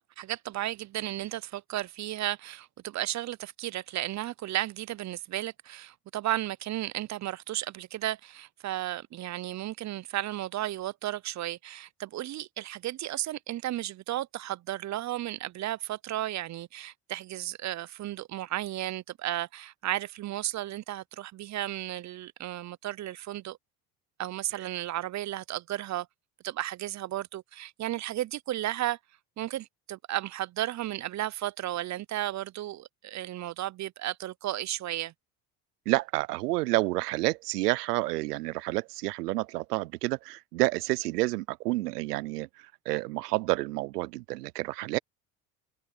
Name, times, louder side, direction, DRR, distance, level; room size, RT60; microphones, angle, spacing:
voice 1, 0.0-23.6 24.2-26.1 26.4-29.0 29.4-35.1, right 14 dB, 40° right, 0.6 m, -34 dB
voice 2, 35.9-45.0, right 20 dB, 85° right, 0.6 m, -29 dB
open air
hypercardioid pair, 70°, 46 cm